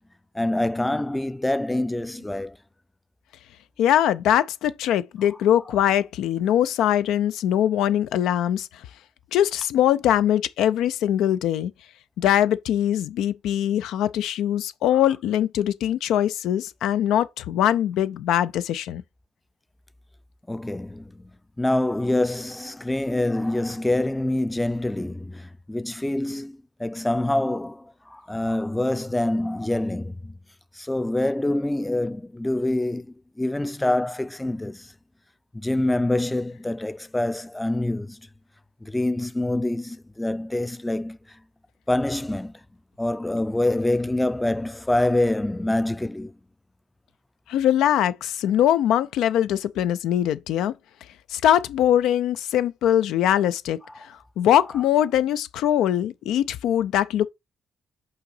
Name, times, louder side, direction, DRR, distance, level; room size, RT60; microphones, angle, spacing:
voice 1, 0.4-2.5 20.5-21.0 21.6-25.4 25.7-27.8 28.1-30.3 30.8-33.1 33.4-34.8 35.6-38.2 38.8-41.2 41.9-42.5 43.0-46.3, left 1 dB, 10° left, 0.4 m, -25 dB
voice 2, 3.8-8.8 9.3-11.7 12.2-19.0 47.5-50.7 51.3-57.3, left 11 dB, 85° left, 0.5 m, -22 dB
5.6 x 3.9 x 5.5 m
cardioid pair, 90°, 0 cm